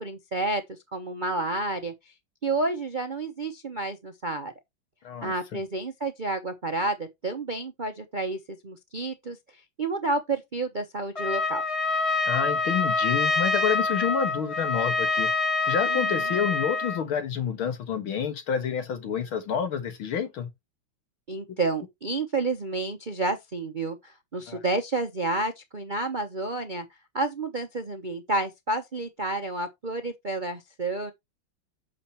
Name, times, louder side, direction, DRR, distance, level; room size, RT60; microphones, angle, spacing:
voice 1, 0.0-2.1 2.4-4.5 5.2-11.6 15.9-16.4 21.3-26.9 27.1-31.1, right 2 dB, 45° right, 0.6 m, -30 dB
voice 2, 5.0-5.6 12.3-15.3 15.7-20.5 24.5-24.6, left 7 dB, 75° left, 2.3 m, -29 dB
Trumpet, 11.1-17.0, left 4 dB, 25° left, 0.9 m, -26 dB
8.7 x 6.7 x 3.0 m
omnidirectional pair, 2.3 m